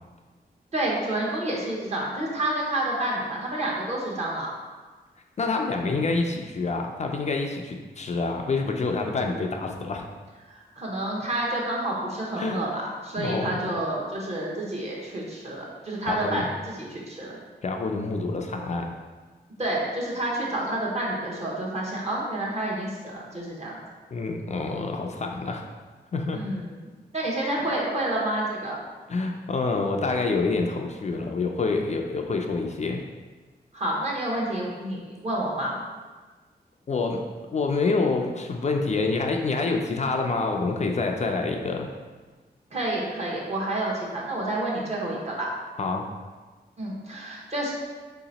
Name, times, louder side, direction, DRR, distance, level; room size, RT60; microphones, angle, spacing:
voice 1, 0.7-4.5 9.0-9.1 10.5-17.4 19.6-23.8 26.3-26.8 27.1-28.8 33.7-35.7 42.7-45.5 46.8-47.7, right 1 dB, 40° right, -4 dB, 1.0 m, -29 dB
voice 2, 5.4-10.0 12.3-12.6 13.2-13.8 16.1-16.4 17.6-18.9 24.1-25.6 26.1-26.4 29.1-33.0 36.9-37.2 37.5-41.9 45.8-46.1, left 3 dB, 45° left, 2 dB, 0.4 m, -27 dB
3.3 x 2.9 x 4.0 m, 1.3 s
wide cardioid pair, 95°, 17 cm